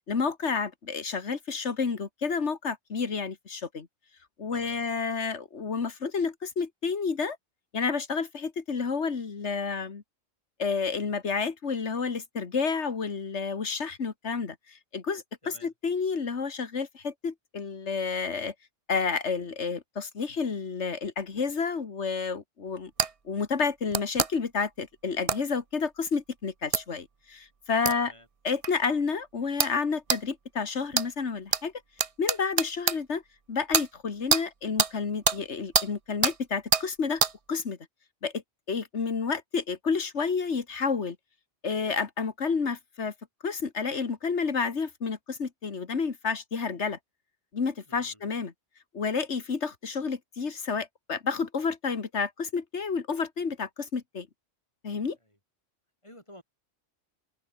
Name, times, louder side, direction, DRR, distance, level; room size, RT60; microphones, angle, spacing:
voice 1, 0.1-3.9 4.4-7.4 7.7-10.0 10.6-15.2 15.6-18.5 18.9-22.9 23.3-28.1 28.4-31.7 32.2-33.2 33.5-37.2 37.5-37.8 38.2-38.3 38.7-41.2 41.6-43.1 43.4-47.0 47.5-48.5 48.9-54.3 54.8-55.2, left 5 dB, 75° left, 2.1 m, -30 dB
voice 2, 4.5-4.8 15.4-15.7 27.9-28.3 47.9-48.3 55.2-55.4 56.0-56.4, equal, 25° left, 8.2 m, -52 dB
sound 1, 23.0-23.1 23.9-24.3 25.3-25.4 26.7-26.8 27.9-28.0 28.6-28.7 29.6-29.8 30.1-30.2 30.9-31.1 31.5-31.6 32.0-33.0 33.7-33.9 34.3-34.4 34.8-34.9 35.3-35.4 35.7-35.9 36.2-36.4 36.7-36.9 37.2-37.3, right 5 dB, 35° right, 0.8 m, -24 dB
open air
omnidirectional pair, 1.2 m